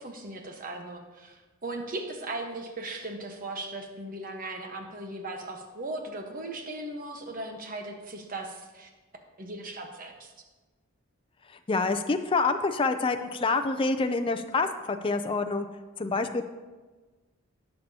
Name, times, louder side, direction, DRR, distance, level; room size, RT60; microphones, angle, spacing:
voice 1, 0.0-8.9 9.4-10.3, right 2 dB, 40° right, 3 dB, 1.2 m, -38 dB
voice 2, 11.7-15.7 16.0-16.4, left 3 dB, 25° left, 7 dB, 0.4 m, -27 dB
17.5 x 6.8 x 2.8 m, 1.2 s
head